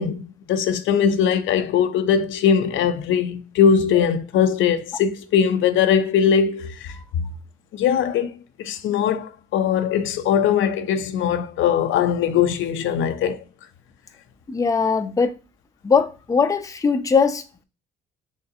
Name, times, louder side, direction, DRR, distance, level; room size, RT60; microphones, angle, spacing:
voice 1, 0.0-6.9 7.7-13.4, left 8 dB, 75° left, 0.5 m, -21 dB
voice 2, 14.5-15.3 15.8-17.6, left 5 dB, 15° left, 0.4 m, -20 dB
4.0 x 3.3 x 2.6 m
cardioid pair, 90°, 20 cm